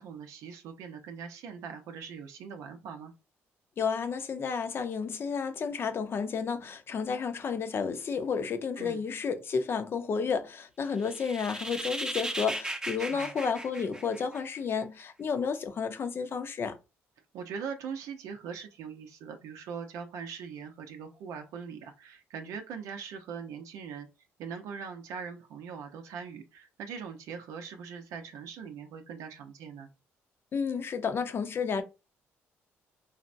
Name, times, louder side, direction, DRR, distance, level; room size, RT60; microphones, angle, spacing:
voice 1, 0.0-3.1 8.8-9.0 13.0-13.3 17.3-24.1 24.4-29.9, right 6 dB, 85° right, 0.6 m, -41 dB
voice 2, 3.8-16.8 30.5-31.8, left 6 dB, 45° left, 0.6 m, -31 dB
sound 1, 11.0-14.6, right 1 dB, 15° right, 0.6 m, -36 dB
4.0 x 2.1 x 2.5 m
cardioid pair, 95°, 5 cm